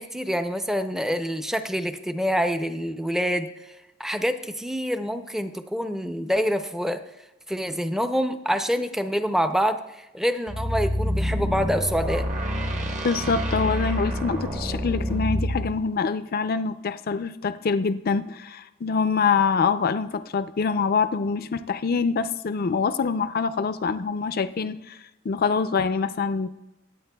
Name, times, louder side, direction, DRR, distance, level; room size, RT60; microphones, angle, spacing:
voice 1, 0.0-3.5 4.0-7.0 7.5-12.3, equal, ahead, 8 dB, 0.5 m, -26 dB
sound 1, 10.5-15.7, equal, 40° right, 1.0 m, -27 dB
voice 2, 13.0-25.0 25.2-26.5, left 5 dB, 50° left, 12 dB, 0.4 m, -25 dB
23.0 x 8.7 x 2.3 m, 0.97 s
head